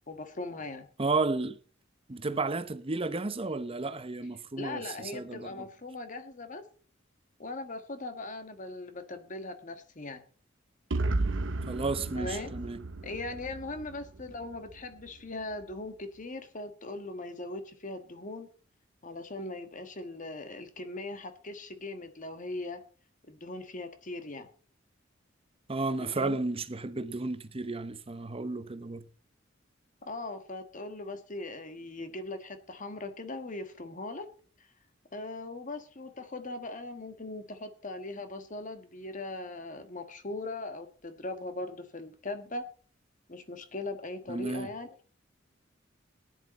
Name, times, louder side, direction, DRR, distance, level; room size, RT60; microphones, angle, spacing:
voice 1, 0.1-0.9 4.6-6.6 7.4-10.2 12.2-12.5 13.0-18.5 19.0-22.8 23.3-24.5 26.0-26.4 30.0-34.3 35.1-42.6 43.3-44.9, left 2 dB, 40° left, 1.5 m, -40 dB
voice 2, 1.0-1.6 2.1-5.6 11.7-12.8 25.7-29.0 44.3-44.7, right 3 dB, 30° right, 0.8 m, -32 dB
sound 1, 10.9-14.8, right 2 dB, 70° right, 0.8 m, -33 dB
16.5 x 10.5 x 4.2 m
head